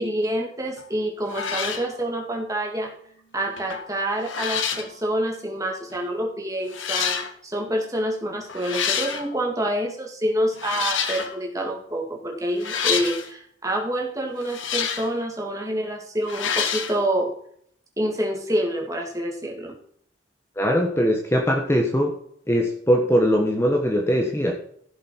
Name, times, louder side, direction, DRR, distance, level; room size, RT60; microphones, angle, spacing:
voice 1, 0.0-2.9 3.3-7.2 7.4-17.3 18.0-19.7, right 1 dB, 15° right, 0 dB, 2.4 m, -27 dB
sound 1, 0.8-0.9 1.3-1.9 3.6-3.9 4.2-4.9 5.9-6.0 6.7-7.3 8.5-9.3 10.6-11.4 12.6-13.3 14.4-15.1 16.2-17.0, left 7 dB, 80° left, 1.6 m, -27 dB
voice 2, 20.6-22.1 22.5-24.5, equal, 15° left, 1 dB, 1.4 m, -21 dB
15.5 x 7.3 x 4.7 m, 0.63 s
head